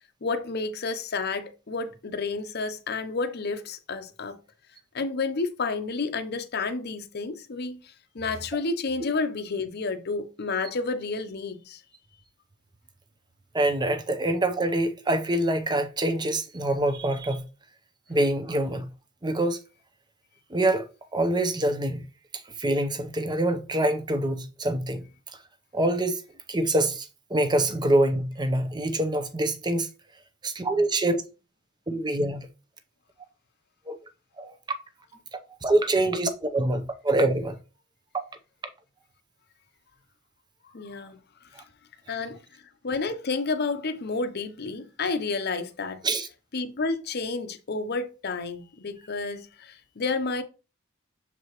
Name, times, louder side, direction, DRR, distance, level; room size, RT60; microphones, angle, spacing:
voice 1, 0.2-4.4 4.9-11.8 40.7-41.2 42.1-46.0 46.5-50.4, left 4 dB, 50° left, 0.7 m, -30 dB
voice 2, 13.5-17.4 18.1-18.9 19.2-19.6 20.5-20.9 21.1-22.0 22.3-25.0 25.7-26.2 26.5-29.9 30.4-31.2 31.9-32.5 33.9-34.0 34.4-34.5 35.3-37.6 46.0-46.3, right 1 dB, 20° right, 0.7 m, -25 dB
6.8 x 4.6 x 3.0 m
head